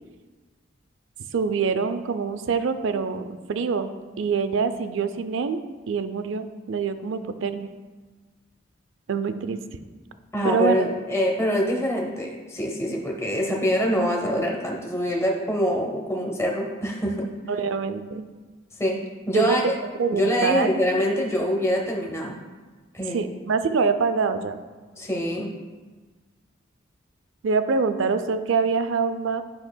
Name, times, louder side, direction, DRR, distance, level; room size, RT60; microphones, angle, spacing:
voice 1, 1.3-3.9 4.2-5.6 5.9-7.7 9.1-9.6 10.4-10.9 17.5-18.2 19.3-19.7 20.0-20.7 23.1-24.6 27.4-29.4, right 5 dB, 75° right, 10 dB, 0.4 m, -25 dB
voice 2, 10.3-17.3 18.8-19.0 19.3-19.6 20.1-22.4 22.9-23.2 25.0-25.5, equal, 15° left, -1 dB, 0.8 m, -25 dB
10.5 x 5.6 x 2.2 m, 1.3 s
head